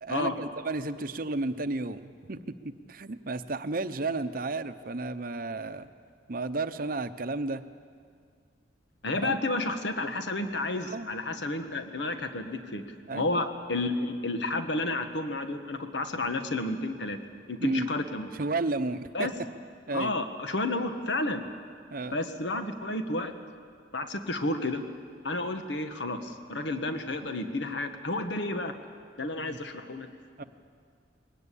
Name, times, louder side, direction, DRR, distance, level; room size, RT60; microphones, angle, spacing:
voice 1, 0.0-5.9 6.3-7.6 9.2-9.3 10.7-11.4 13.1-13.3 17.6-17.9 18.3-19.3 19.9-20.1 21.9-22.2 29.4-29.6 30.4-30.5, right 2 dB, 50° right, 11 dB, 0.7 m, -32 dB
voice 2, 9.0-12.8 13.1-17.2 17.5-18.3 19.1-19.3 19.9-21.4 22.0-23.3 23.9-24.8 25.2-28.8 29.2-30.1, left 2 dB, 75° left, 7 dB, 1.3 m, -31 dB
22.0 x 18.5 x 8.5 m, 2.2 s
head